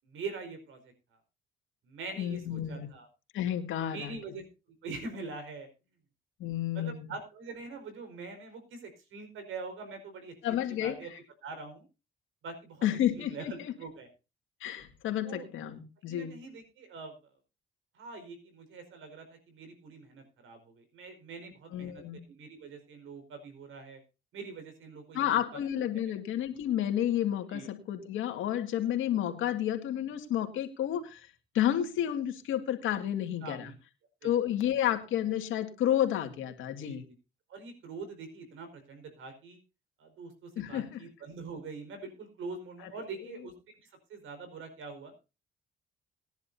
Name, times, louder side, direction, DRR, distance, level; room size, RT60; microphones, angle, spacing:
voice 1, 0.0-0.9 1.8-3.1 3.8-4.4 4.8-5.7 6.7-10.3 10.8-11.1 11.4-11.9 12.4-12.9 13.1-14.1 15.2-15.5 16.1-17.1 17.9-24.0 24.3-25.6 27.5-27.7 33.4-33.7 34.2-34.3 36.8-37.0 37.5-39.6 40.0-43.5 43.8-45.1, right 4 dB, 80° right, 7 dB, 4.8 m, -44 dB
voice 2, 2.2-2.9 3.3-4.2 6.4-7.1 10.4-11.0 12.8-13.7 14.6-16.4 21.7-22.2 25.1-31.3 31.5-33.7 34.2-37.0 40.6-41.0, left 11 dB, 85° left, 6 dB, 2.1 m, -31 dB
20.0 x 10.5 x 2.7 m, 0.30 s
cardioid pair, 90°, 20 cm